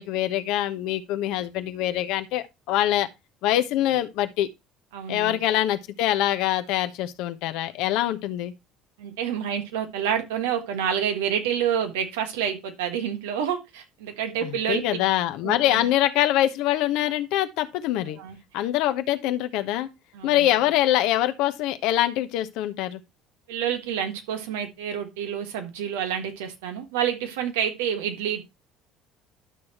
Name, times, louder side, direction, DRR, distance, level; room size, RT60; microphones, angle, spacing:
voice 1, 0.0-3.1 3.4-4.5 5.1-8.5 14.4-18.2 18.5-19.9 20.2-23.0, left 13 dB, 70° left, 1.0 m, -24 dB
voice 2, 4.9-5.4 9.0-15.0 15.4-15.9 18.2-18.4 20.1-20.5 23.5-28.4, right 8 dB, 80° right, 1.5 m, -28 dB
12.0 x 6.3 x 2.9 m
hypercardioid pair, 65°, 0 cm